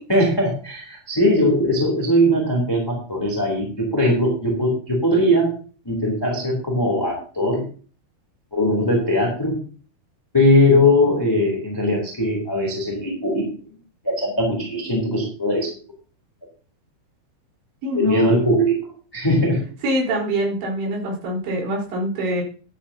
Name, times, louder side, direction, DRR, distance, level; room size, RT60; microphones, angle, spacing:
voice 1, 0.1-5.5 5.8-7.6 8.5-9.6 10.3-13.4 14.0-15.7 17.9-18.7 19.1-19.6, left 1 dB, 5° left, -2 dB, 2.4 m, -20 dB
voice 2, 17.8-18.3 19.8-22.4, right 1 dB, 60° right, -3 dB, 6.5 m, -24 dB
13.5 x 11.5 x 2.9 m, 0.40 s
omnidirectional pair, 5.7 m